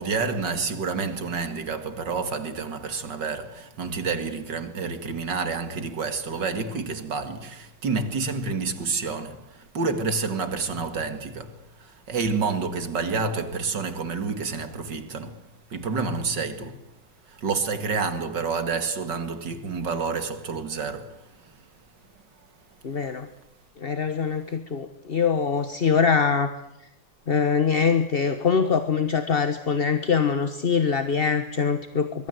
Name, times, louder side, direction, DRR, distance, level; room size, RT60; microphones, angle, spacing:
voice 1, 0.0-15.4 15.7-16.8 17.3-21.2, right 4 dB, 60° right, 2.6 m, -29 dB
voice 2, 22.8-23.3 23.8-26.5 27.3-32.3, left 6 dB, 35° left, 1.2 m, -23 dB
24.0 x 22.5 x 7.9 m
omnidirectional pair, 2.2 m